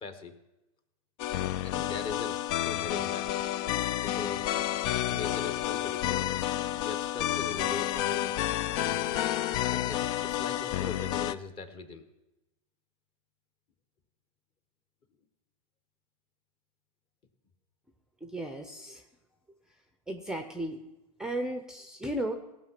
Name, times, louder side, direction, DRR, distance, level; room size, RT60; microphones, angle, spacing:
voice 1, 0.0-0.3 1.6-2.4 2.6-3.5 4.0-4.5 5.0-6.3 6.8-8.4 8.8-9.4 9.7-12.0, left 4 dB, 30° left, 8 dB, 1.3 m, -40 dB
sound 1, 1.2-11.3, left 13 dB, 45° left, 0.4 m, -30 dB
voice 2, 18.2-19.0 20.1-20.8 21.2-22.3, right 1 dB, 5° right, 7 dB, 0.7 m, -35 dB
17.5 x 5.9 x 5.9 m, 0.96 s
hypercardioid pair, 130°, 18 cm